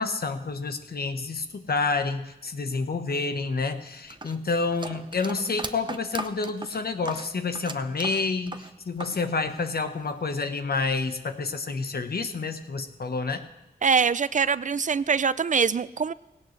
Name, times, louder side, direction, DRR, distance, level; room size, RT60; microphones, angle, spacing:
voice 1, 0.0-13.4, left 4 dB, 65° left, 8 dB, 1.1 m, -29 dB
sound 1, 4.1-9.2 9.5-10.3, right 2 dB, 30° right, 0.8 m, -38 dB
voice 2, 13.8-16.1, right 6 dB, 50° right, 17 dB, 0.4 m, -23 dB
18.0 x 17.0 x 3.3 m, 0.95 s
wide cardioid pair, 75°, 17 cm